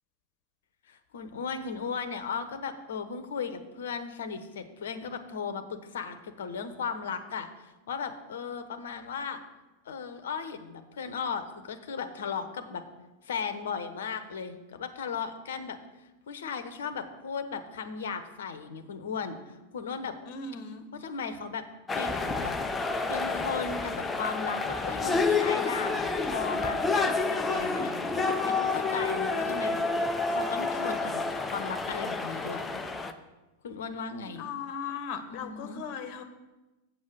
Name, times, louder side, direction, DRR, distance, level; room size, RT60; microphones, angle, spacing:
voice 1, 0.9-9.4 9.8-12.8 13.2-15.8 16.3-19.4 19.7-20.2 20.9-21.6 21.9-22.5 23.1-31.2 31.5-32.6 33.6-34.5 35.3-35.8, left 6 dB, 60° left, 10 dB, 0.9 m, -36 dB
voice 2, 20.3-20.8 34.3-36.2, left 6 dB, 45° left, 8 dB, 1.3 m, -38 dB
sound 1, 21.9-33.1, left 3 dB, 10° left, 0.7 m, -29 dB
7.7 x 7.4 x 6.3 m, 1.1 s
figure-of-eight pair, 90°, 0 cm